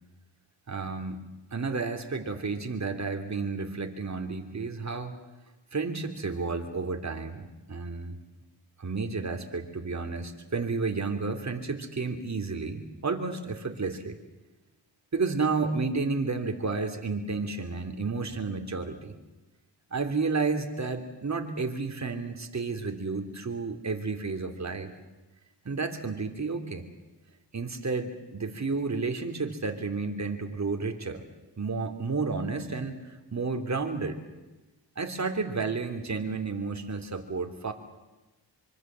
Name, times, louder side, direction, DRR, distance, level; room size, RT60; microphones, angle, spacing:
voice 1, 0.7-1.2 1.5-5.1 5.7-8.2 8.8-14.2 15.1-19.1 19.9-24.9 25.6-26.9 27.5-31.2 31.6-34.2 34.9-37.7, right 4 dB, 40° right, 5 dB, 3.3 m, -31 dB
25.0 x 24.5 x 7.7 m, 1.1 s
cardioid pair, 80°, 43 cm